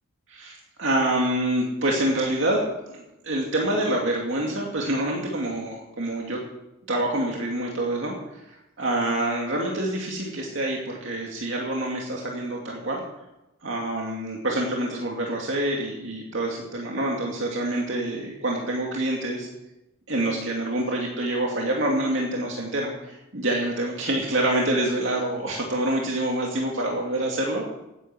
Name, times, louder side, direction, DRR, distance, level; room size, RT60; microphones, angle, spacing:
voice 1, 0.3-6.4 6.9-13.0 13.6-19.5 20.1-27.7, right 1 dB, 60° right, -1 dB, 2.4 m, -26 dB
16.5 x 10.0 x 6.1 m, 0.94 s
head